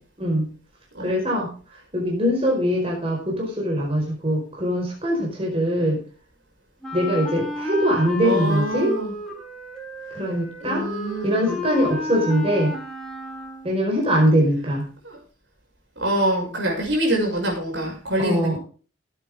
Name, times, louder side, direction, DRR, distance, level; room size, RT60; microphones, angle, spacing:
voice 1, 1.0-1.5 1.9-6.0 6.9-8.9 10.1-10.9 11.2-12.7 13.6-14.8 18.2-18.6, equal, 30° right, -2 dB, 4.9 m, -22 dB
Wind instrument woodwind instrument, 6.8-13.8, left 2 dB, 5° left, 3.4 m, -32 dB
voice 2, 8.2-9.1 10.6-11.6 15.0-15.2 16.0-18.6, right 1 dB, 70° right, 0 dB, 6.1 m, -25 dB
17.5 x 8.6 x 3.7 m, 0.38 s
head